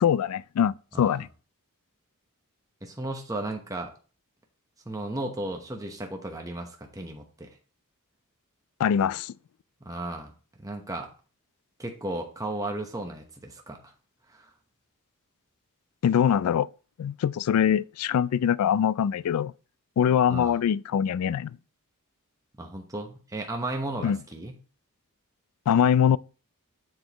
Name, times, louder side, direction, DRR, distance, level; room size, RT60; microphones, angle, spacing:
voice 1, 0.0-1.3 8.8-9.3 16.0-16.7 17.0-19.5 20.0-21.5 24.0-24.2 25.7-26.2, left 8 dB, 75° left, 0.3 m, -23 dB
voice 2, 0.9-1.2 2.8-3.9 4.9-7.6 9.8-10.3 10.6-11.1 11.8-13.9 14.3-14.5 20.3-20.6 22.6-24.6, right 1 dB, 15° right, 0.9 m, -35 dB
7.6 x 7.2 x 3.0 m
head